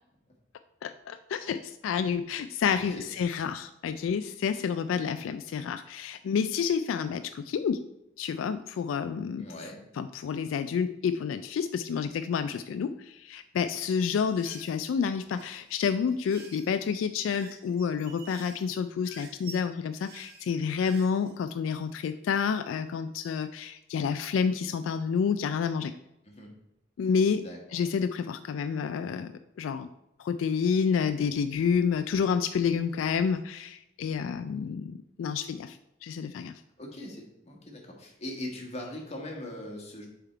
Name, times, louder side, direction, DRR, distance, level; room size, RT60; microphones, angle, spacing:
voice 1, 0.8-7.8 8.2-9.5 10.0-25.9 27.0-27.4 27.7-29.3 29.6-29.9 30.2-36.5, left 6 dB, 85° left, 10 dB, 0.3 m, -29 dB
voice 2, 2.7-3.1 9.4-9.8 26.2-26.5 27.4-27.8 36.8-40.1, left 1 dB, 35° left, 0 dB, 1.5 m, -41 dB
sound 1, 14.2-21.4, right 4 dB, 55° right, 1.3 m, -50 dB
7.2 x 3.5 x 4.4 m, 0.85 s
head